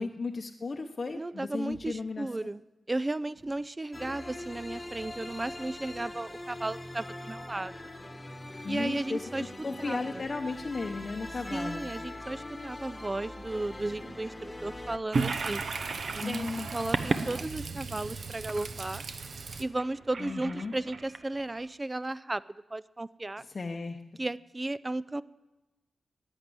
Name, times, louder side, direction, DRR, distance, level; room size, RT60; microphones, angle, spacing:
voice 1, 0.0-2.3 8.6-11.9 16.2-16.7 20.2-20.7 23.5-24.0, left 3 dB, 50° left, 3 dB, 0.8 m, -35 dB
voice 2, 1.1-2.6 2.9-7.9 8.7-9.5 9.8-10.3 11.5-15.6 16.1-19.0 19.6-22.4 22.7-23.4 24.2-25.2, right 2 dB, 25° right, 18 dB, 0.4 m, -34 dB
sound 1, 1.7-2.1 3.4-3.6 5.0-5.3, right 1 dB, 90° right, 3.6 m, -58 dB
sound 2, 3.9-15.0, left 1 dB, 20° left, 1.2 m, -42 dB
Toilet flush, 15.1-21.7, right 4 dB, 65° right, 0.9 m, -34 dB
10.5 x 9.0 x 9.5 m, 1.1 s
cardioid pair, 65°, 0 cm